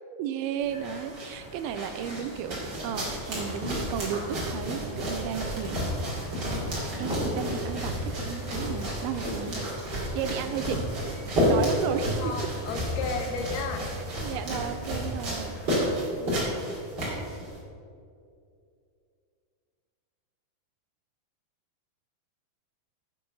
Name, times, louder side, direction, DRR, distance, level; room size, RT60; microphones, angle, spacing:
voice 1, 0.2-6.0 6.8-10.9 11.5-12.5 14.0-15.6, right 9 dB, 80° right, 9 dB, 2.3 m, -34 dB
sound 1, 0.6-17.6, equal, 30° right, 3.1 m, -31 dB
sound 2, 0.7-15.8, equal, 50° left, 3.9 m, -43 dB
voice 2, 12.0-13.9 16.1-16.4, left 5 dB, 75° left, 4 dB, 2.8 m, -35 dB
8.7 x 8.5 x 5.4 m, 2.4 s
omnidirectional pair, 4.7 m